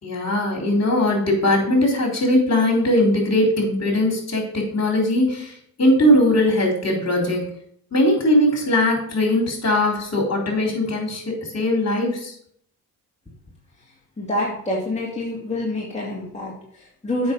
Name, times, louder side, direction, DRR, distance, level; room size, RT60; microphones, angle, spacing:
voice 1, 0.0-5.5 5.8-7.5 7.9-12.3, left 1 dB, 35° left, 1 dB, 3.9 m, -20 dB
voice 2, 14.2-17.3, left 1 dB, 15° left, -5 dB, 2.5 m, -27 dB
7.7 x 6.0 x 5.3 m, 0.65 s
supercardioid pair, 65°, 43 cm